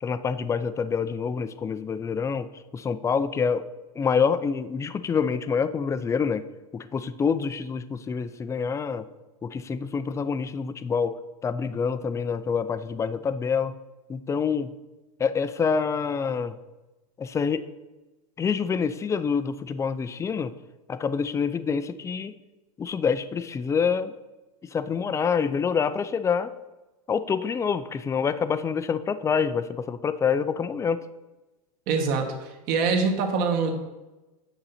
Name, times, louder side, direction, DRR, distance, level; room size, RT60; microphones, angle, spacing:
voice 1, 0.0-2.5 2.7-3.7 3.9-6.4 6.7-9.1 9.4-13.7 14.1-14.7 15.2-16.6 17.2-17.7 18.4-20.5 20.9-22.3 22.8-24.1 24.6-26.5 27.1-31.0, left 6 dB, 15° left, 13 dB, 0.4 m, -26 dB
voice 2, 31.9-33.7, right 4 dB, 50° right, 4 dB, 1.7 m, -24 dB
8.9 x 6.7 x 4.2 m, 1.1 s
hypercardioid pair, 120°, 20 cm